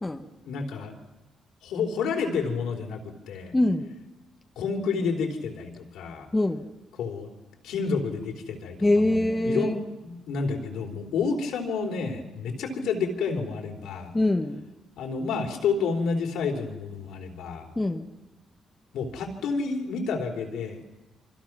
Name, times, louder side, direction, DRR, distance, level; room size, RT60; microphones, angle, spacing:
voice 1, 0.4-0.9 1.6-3.5 4.6-6.3 7.0-7.3 7.6-14.1 15.0-17.7 18.9-20.8, left 5 dB, 85° left, 3.5 m, -30 dB
voice 2, 3.5-3.9 6.3-6.7 8.8-9.8 14.1-14.7 17.7-18.1, left 1 dB, 15° left, 1.3 m, -24 dB
26.0 x 25.5 x 6.1 m
cardioid pair, 90°, 0 cm